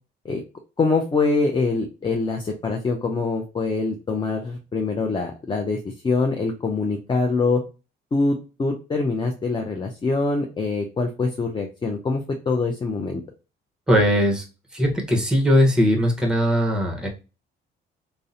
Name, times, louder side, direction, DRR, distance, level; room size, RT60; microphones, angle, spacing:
voice 1, 0.8-5.8 6.0-7.6 8.1-13.2, left 3 dB, 25° left, 2 dB, 0.4 m, -24 dB
voice 2, 13.9-14.4 14.7-17.1, equal, 5° right, 0 dB, 0.8 m, -19 dB
2.6 x 2.0 x 2.5 m, 0.31 s
cardioid pair, 90°, 20 cm